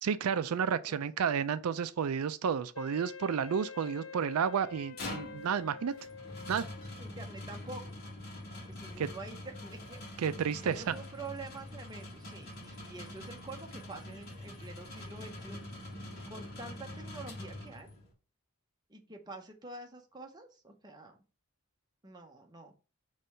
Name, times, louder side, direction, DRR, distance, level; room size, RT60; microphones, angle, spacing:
voice 1, 0.0-5.9 6.5-6.6 9.0-9.1 10.2-10.8, right 7 dB, 85° right, 0.4 m, -31 dB
Wind instrument woodwind instrument, 2.7-7.0, left 4 dB, 65° left, 0.5 m, -47 dB
sound 1, 4.7-18.1, left 1 dB, 45° left, 1.8 m, -45 dB
voice 2, 7.0-7.8 8.7-10.0 10.6-15.6 16.3-17.9 18.9-21.2 22.0-22.7, right 3 dB, 20° right, 0.9 m, -47 dB
5.3 x 3.2 x 5.6 m
head